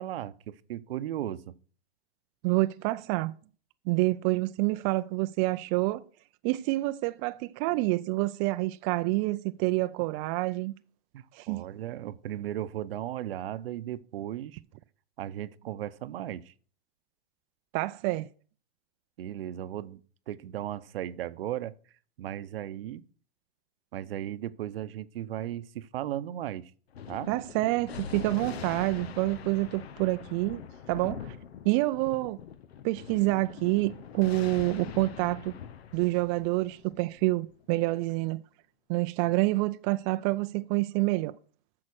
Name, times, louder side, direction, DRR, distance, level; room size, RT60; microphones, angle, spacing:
voice 1, 0.0-1.5 11.1-14.6 15.2-16.5 19.2-20.0 20.3-21.7 22.2-23.0 23.9-26.7 27.1-27.3, right 12 dB, 70° right, 0.8 m, -36 dB
voice 2, 2.4-3.3 3.9-6.0 6.4-10.7 11.3-11.6 17.7-18.3 27.3-31.4 31.6-32.4 32.8-35.5 35.9-38.4 38.9-41.4, right 20 dB, 30° right, 0.4 m, -27 dB
Thunder, 26.9-37.8, left 8 dB, 85° left, 0.9 m, -43 dB
8.5 x 6.4 x 6.3 m
hypercardioid pair, 130°, 30 cm